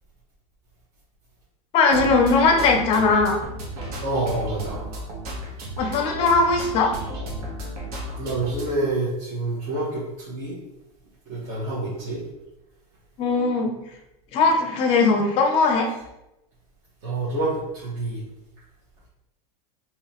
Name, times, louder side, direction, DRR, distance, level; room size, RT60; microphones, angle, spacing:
voice 1, 1.7-3.4 5.8-6.9 13.2-13.7 14.3-15.9, left 3 dB, 30° left, 3 dB, 0.5 m, -19 dB
sound 1, 1.9-8.7, equal, 75° right, 1.2 m, -33 dB
voice 2, 4.0-4.8 8.2-10.6 11.3-12.2 17.0-18.2, right 2 dB, 50° right, -8 dB, 1.2 m, -27 dB
3.8 x 3.0 x 2.9 m, 0.91 s
supercardioid pair, 165°, 19 cm